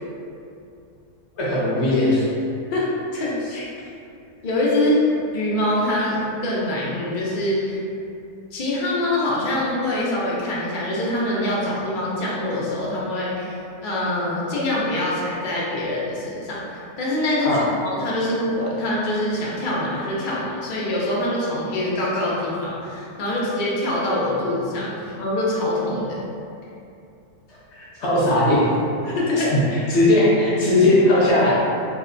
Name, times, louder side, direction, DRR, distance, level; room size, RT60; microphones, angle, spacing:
voice 1, 1.4-2.3 17.4-17.6 28.0-28.6 29.5-31.6, left 1 dB, 55° left, -8 dB, 0.9 m, -18 dB
voice 2, 2.7-3.7 4.4-5.1 5.3-7.8 8.5-13.6 13.8-26.3 29.0-29.5, left 1 dB, 80° left, -6 dB, 0.4 m, -24 dB
2.8 x 2.2 x 3.7 m, 2.6 s
omnidirectional pair, 1.7 m